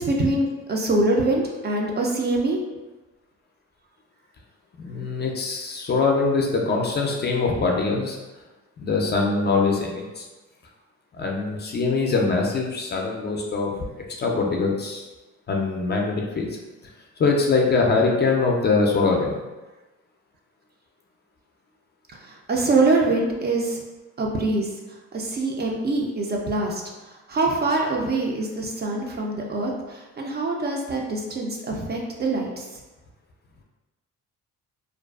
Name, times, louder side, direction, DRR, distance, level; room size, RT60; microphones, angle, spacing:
voice 1, 0.0-2.6 22.1-23.8 24.2-32.7, right 2 dB, 35° right, 0 dB, 0.4 m, -24 dB
voice 2, 4.8-8.2 8.8-10.3 11.1-13.8 14.2-15.0 15.5-16.5 17.2-19.4, left 4 dB, 35° left, 0 dB, 0.4 m, -23 dB
2.4 x 2.2 x 2.3 m, 1.1 s
cardioid pair, 90°, 30 cm